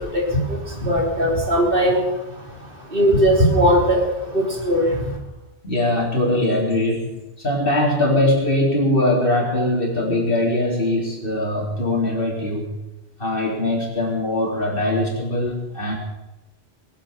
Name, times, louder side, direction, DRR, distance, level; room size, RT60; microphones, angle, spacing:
voice 1, 0.8-2.0 2.9-4.0 4.3-4.8, equal, 55° right, -1 dB, 3.9 m, -18 dB
voice 2, 5.6-12.7 13.2-15.9, left 1 dB, 55° left, -2 dB, 4.0 m, -21 dB
22.0 x 8.2 x 7.3 m, 0.99 s
omnidirectional pair, 1.1 m